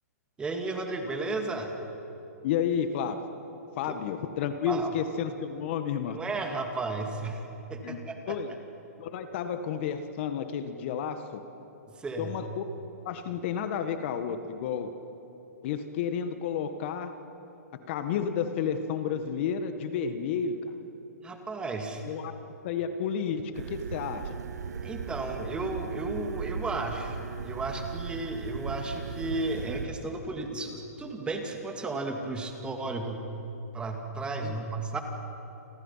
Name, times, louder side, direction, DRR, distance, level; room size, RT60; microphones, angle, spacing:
voice 1, 0.4-1.7 3.9-4.0 4.7-4.9 6.1-7.4 7.7-8.4 12.0-12.3 21.2-22.0 24.8-27.2 27.4-33.3 33.7-35.0, right 3 dB, 10° right, 4 dB, 2.4 m, -34 dB
voice 2, 2.4-3.2 3.8-6.2 7.8-8.0 8.3-8.5 9.0-11.4 12.2-12.6 13.0-14.9 15.6-17.1 17.9-20.6 22.0-22.3 22.6-23.4 23.7-24.4 34.4-34.6, left 7 dB, 45° left, 8 dB, 1.6 m, -31 dB
sound 1, 23.5-29.9, right 5 dB, 75° right, 1.5 m, -37 dB
29.5 x 24.0 x 5.8 m, 2.9 s
hypercardioid pair, 140°, 9 cm